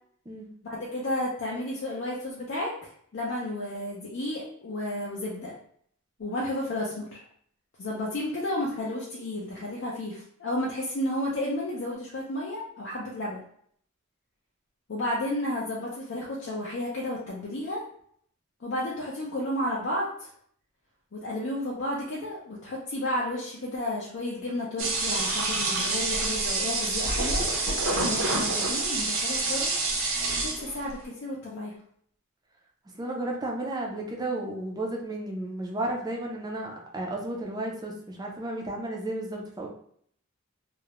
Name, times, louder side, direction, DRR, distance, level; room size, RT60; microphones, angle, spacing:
voice 1, 0.6-2.7 3.1-5.5 6.2-7.2 7.8-13.4 14.9-17.8 18.6-20.3 21.1-27.4 27.9-29.7 30.4-31.7, left 1 dB, 60° left, -4 dB, 0.5 m, -32 dB
sound 1, 24.8-30.9, right 3 dB, 70° right, 0.6 m, -27 dB
voice 2, 33.0-39.7, right 1 dB, 20° right, 0 dB, 0.4 m, -33 dB
2.3 x 2.0 x 2.8 m, 0.63 s
head